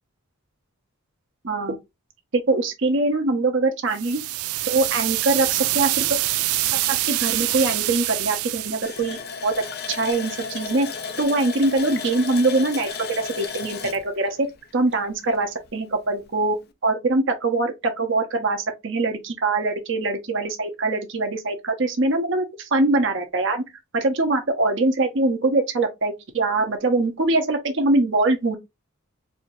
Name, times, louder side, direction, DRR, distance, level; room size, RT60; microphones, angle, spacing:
voice 1, 1.4-1.8 2.3-4.2 4.6-6.2 6.7-10.9 11.2-14.5 14.7-23.6 23.9-28.6, right 2 dB, 55° right, 0.8 m, -23 dB
sound 1, 3.9-9.0, right 16 dB, 85° right, 0.4 m, -25 dB
Water tap faucet, 8.8-15.3 15.7-15.8 16.2-16.4, left 5 dB, 45° left, 0.6 m, -34 dB
4.5 x 2.7 x 2.6 m
head